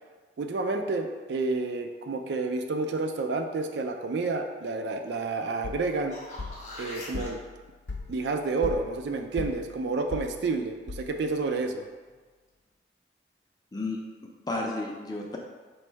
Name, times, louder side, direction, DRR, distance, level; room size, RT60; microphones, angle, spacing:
voice 1, 0.4-6.2 6.7-7.4 8.1-11.8, right 3 dB, 70° right, 5 dB, 0.3 m, -30 dB
sound 1, 5.6-11.4, left 3 dB, 75° left, 0.5 m, -40 dB
sound 2, 5.8-7.3 12.1-12.2, left 1 dB, 45° left, 0.8 m, -42 dB
voice 2, 13.7-15.4, left 2 dB, 20° left, 0 dB, 0.4 m, -33 dB
3.1 x 2.6 x 4.4 m, 1.4 s
head